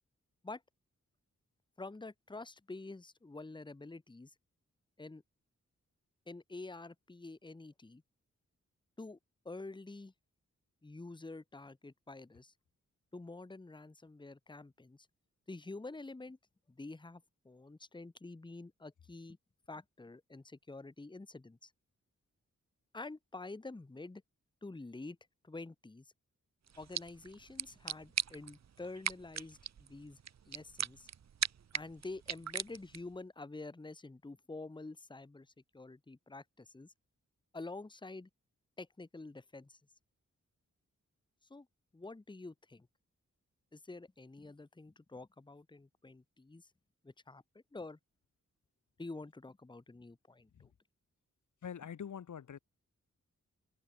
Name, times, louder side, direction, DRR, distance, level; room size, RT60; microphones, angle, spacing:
voice 1, 1.8-4.3 5.0-5.2 6.3-8.0 9.0-9.2 9.4-10.1 10.8-12.5 13.1-15.1 15.5-16.4 16.7-19.4 19.7-21.7 22.9-24.2 24.6-25.2 25.4-26.1 26.8-30.2 30.5-31.1 31.7-36.9 37.5-38.3 38.8-39.8 41.5-41.7 41.9-42.9 43.7-46.7 47.0-47.4 47.7-48.0 49.0-50.7, left 2 dB, 15° left, 1.3 m, -48 dB
sound 1, 26.7-33.2, right 8 dB, 65° right, 1.1 m, -41 dB
voice 2, 51.6-52.6, left 8 dB, 80° left, 1.6 m, -44 dB
wide cardioid pair, 170°, 29 cm